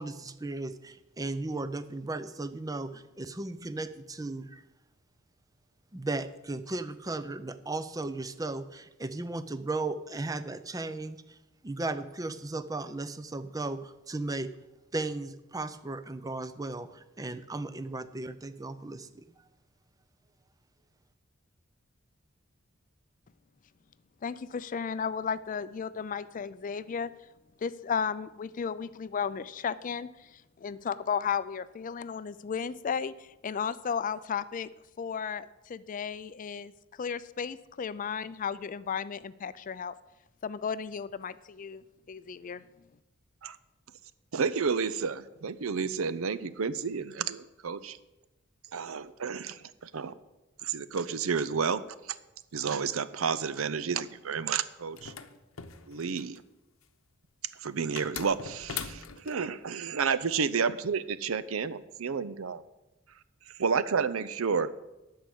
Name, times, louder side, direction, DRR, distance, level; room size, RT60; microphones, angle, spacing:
voice 1, 0.0-4.6 5.9-11.2 11.6-14.5 14.9-19.2, right 2 dB, 20° right, 12 dB, 0.5 m, -36 dB
voice 2, 24.2-27.1 27.6-34.7 35.0-36.7 37.0-39.9 40.4-42.6, left 6 dB, 40° left, 15 dB, 0.4 m, -34 dB
voice 3, 44.3-48.0 48.7-50.1 50.6-51.8 52.5-55.1 55.9-56.4 57.6-62.6 63.6-64.7, right 5 dB, 85° right, 14 dB, 0.6 m, -31 dB
sound 1, 54.9-56.4 58.0-59.4, left 7 dB, 80° left, 0.8 m, -40 dB
12.5 x 4.8 x 8.4 m, 1.0 s
head